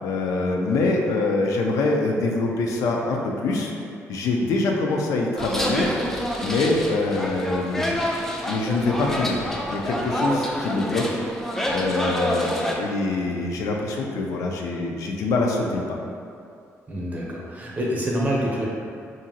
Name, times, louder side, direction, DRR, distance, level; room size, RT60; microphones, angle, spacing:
voice 1, 0.0-3.7 4.1-5.9 6.4-8.2 8.5-9.4 9.7-11.0 11.7-16.0, left 3 dB, 80° left, 0 dB, 0.4 m, -24 dB
sound 1, 5.4-12.7, equal, 5° left, 0.3 m, -28 dB
voice 2, 16.9-18.6, equal, 30° right, -4 dB, 0.6 m, -26 dB
2.9 x 2.5 x 2.7 m, 2.4 s
cardioid pair, 105°, 6 cm